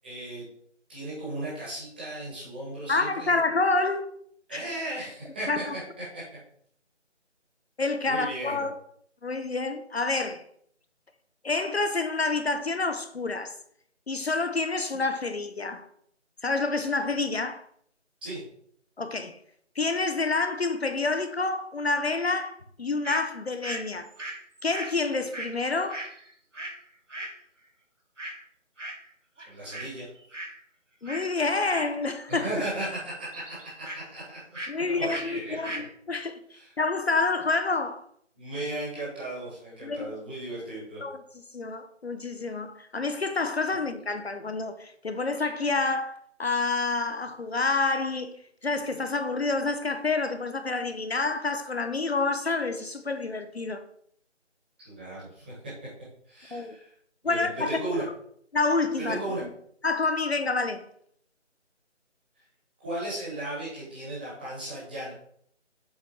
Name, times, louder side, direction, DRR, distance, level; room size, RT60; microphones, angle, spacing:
voice 1, 0.0-0.4 0.9-3.3 4.5-5.8 6.1-6.2 8.0-8.6 18.2-18.4 29.4-30.1 32.3-34.6 34.8-35.5 36.5-36.7 38.3-41.0 54.8-55.5 56.3-56.9 57.2-58.0 59.0-59.4 62.8-65.1, right 1 dB, 10° right, 1.4 m, -36 dB
voice 2, 2.9-4.1 4.5-4.6 5.5-5.8 7.8-8.7 9.2-10.4 11.4-13.5 14.1-15.8 16.4-17.6 19.0-19.4 19.8-24.1 24.6-26.1 31.0-32.6 34.7-38.0 39.8-40.1 41.0-41.2 41.5-48.3 48.6-53.8 56.5-56.8 57.2-58.0 58.5-59.5 59.8-60.8, left 3 dB, 60° left, 0.7 m, -28 dB
sound 1, 23.0-23.2 23.6-26.8 27.1-27.4 28.2-28.4 28.8-29.1 29.4-29.9 30.2-30.6 31.0-31.3 31.7-32.5 32.7-34.0 34.5-34.8 35.1-35.3 35.5-35.9, right 1 dB, 90° right, 2.0 m, -38 dB
7.4 x 4.3 x 4.5 m
figure-of-eight pair, 165°, 36 cm